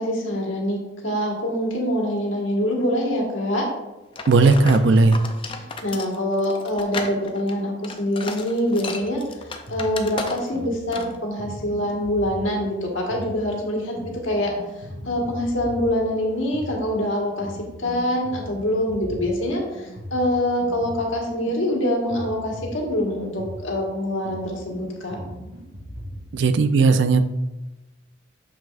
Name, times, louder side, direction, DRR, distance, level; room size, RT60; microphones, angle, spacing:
voice 1, 0.0-3.6 5.5-9.2 9.7-14.5 15.0-25.2, left 1 dB, 85° left, -1 dB, 1.6 m, -25 dB
sound 1, 4.1-10.6 10.9-11.2, left 3 dB, 25° left, 0.4 m, -34 dB
voice 2, 4.3-5.2 26.3-27.2, right 3 dB, 70° right, 10 dB, 0.4 m, -16 dB
sound 2, 9.0-26.3, equal, 85° right, 2.1 m, -39 dB
7.1 x 6.0 x 2.5 m, 1.0 s
head